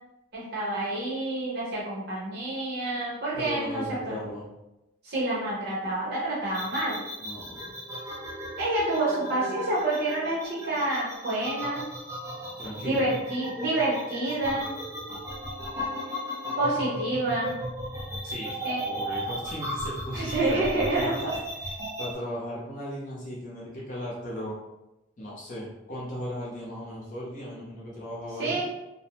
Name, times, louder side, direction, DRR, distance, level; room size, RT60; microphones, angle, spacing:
voice 1, 0.3-4.2 5.0-7.0 8.6-11.8 12.8-14.7 16.6-17.6 18.6-18.8 20.1-21.3 28.4-28.6, right 2 dB, 50° right, -7 dB, 0.7 m, -28 dB
voice 2, 3.3-4.5 7.2-7.7 12.6-13.0 18.2-21.1 22.0-24.6 25.2-28.6, equal, 40° left, -6 dB, 0.6 m, -36 dB
sound 1, 6.5-22.1, equal, 15° right, 0.3 m, -36 dB
2.6 x 2.0 x 2.9 m, 0.94 s
head